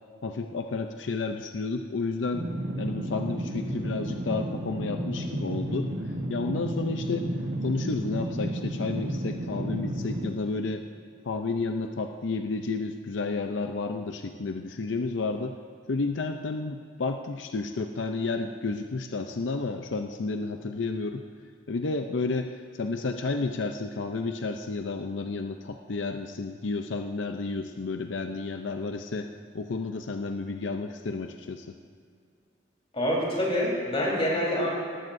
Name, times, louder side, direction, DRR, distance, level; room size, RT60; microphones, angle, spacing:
voice 1, 0.2-2.5 2.8-5.9 6.3-7.3 7.6-10.9 11.2-15.6 15.9-21.3 21.7-29.3 29.5-31.8, left 3 dB, 85° left, 6 dB, 0.6 m, -31 dB
sound 1, 2.3-10.3, right 1 dB, 80° right, 1.4 m, -32 dB
voice 2, 32.9-34.7, equal, 30° left, -4 dB, 4.0 m, -26 dB
19.5 x 14.0 x 2.7 m, 2.2 s
head